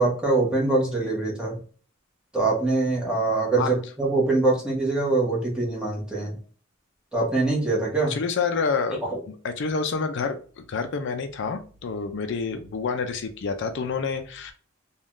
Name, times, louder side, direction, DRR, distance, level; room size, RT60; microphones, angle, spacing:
voice 1, 0.0-1.6 2.3-6.3 7.1-8.2 9.1-9.2, right 3 dB, 5° right, -4 dB, 1.1 m, -23 dB
voice 2, 8.1-9.0 9.3-10.4 10.7-14.5, left 5 dB, 60° left, 7 dB, 0.4 m, -28 dB
3.5 x 2.2 x 2.5 m, 0.40 s
head